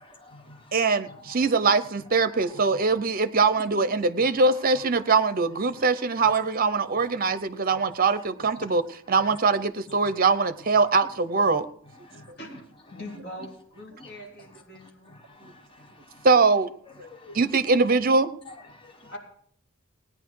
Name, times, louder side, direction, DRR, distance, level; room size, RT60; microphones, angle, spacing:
voice 1, 0.0-1.4 2.1-2.9 4.2-4.3 4.7-4.9 5.7-6.4 6.9-7.1 7.7-8.0 8.4-8.5 9.2-9.4 10.0-10.2 11.9-12.6 12.9-13.0 14.0-14.1 14.4-16.3 16.9-17.4 18.4-19.1, left 2 dB, 25° left, 3 dB, 1.3 m, -49 dB
voice 2, 0.7-8.8 9.1-11.7 16.2-16.7 17.0-17.1 17.3-18.3, right 4 dB, 45° right, 13 dB, 0.7 m, -22 dB
voice 3, 12.1-15.1 19.1-19.2, left 1 dB, 50° left, -1 dB, 3.8 m, -42 dB
17.5 x 9.9 x 4.7 m, 0.63 s
head